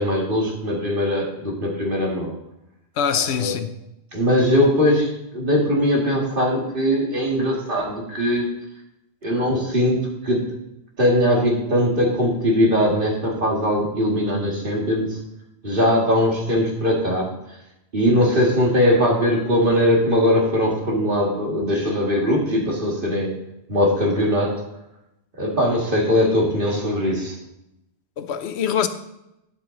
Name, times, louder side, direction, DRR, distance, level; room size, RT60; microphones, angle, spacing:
voice 1, 0.0-2.3 3.3-3.6 4.1-8.5 9.2-10.4 11.0-15.2 15.6-17.6 17.9-23.3 23.7-24.7 25.4-27.4, equal, 55° right, 2.2 m, -20 dB
voice 2, 3.0-3.7 28.2-28.9, left 8 dB, 80° left, 1.0 m, -23 dB
9.8 x 7.7 x 3.9 m
omnidirectional pair, 1.1 m